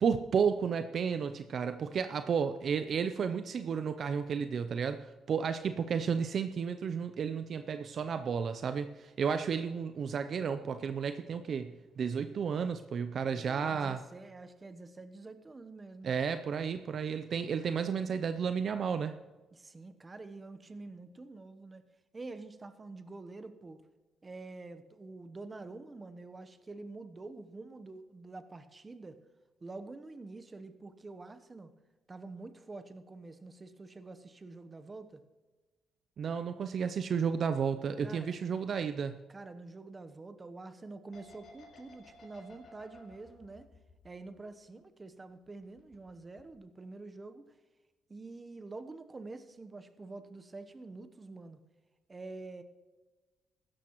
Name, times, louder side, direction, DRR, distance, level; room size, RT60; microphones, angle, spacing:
voice 1, 0.0-14.0 16.0-19.1 36.2-39.1, right 6 dB, 55° right, 10 dB, 0.5 m, -32 dB
voice 2, 3.0-3.4 9.2-9.5 13.2-16.2 19.5-21.8 22.1-23.8 24.2-29.2 29.6-31.7 32.1-35.2 38.0-38.4 39.3-43.7 44.0-47.5 48.1-51.6 52.1-52.6, right 3 dB, 25° right, 10 dB, 0.9 m, -47 dB
sound 1, 41.1-44.9 45.2-46.1 46.4-46.6, left 3 dB, 55° left, 3.8 m, -56 dB
16.0 x 12.5 x 3.0 m, 1.2 s
cardioid pair, 90°, 0 cm